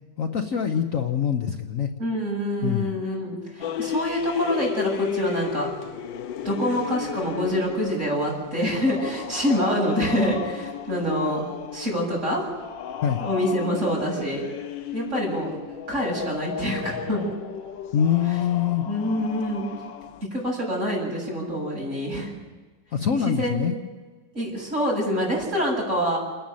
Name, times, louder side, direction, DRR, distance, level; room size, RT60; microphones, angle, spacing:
voice 1, 0.2-1.9 2.6-2.9 13.0-13.2 17.9-18.9 22.9-23.8, left 8 dB, 55° left, 5 dB, 1.2 m, -24 dB
voice 2, 2.0-5.7 6.4-12.5 13.2-14.4 14.9-15.5 15.9-17.2 18.9-19.7 20.3-22.3 23.4-23.6 24.3-26.2, equal, 40° right, -3 dB, 8.0 m, -26 dB
sound 1, 3.6-20.3, left 8 dB, 90° left, 1.6 m, -34 dB
29.0 x 10.5 x 9.1 m, 1.4 s
omnidirectional pair, 1.9 m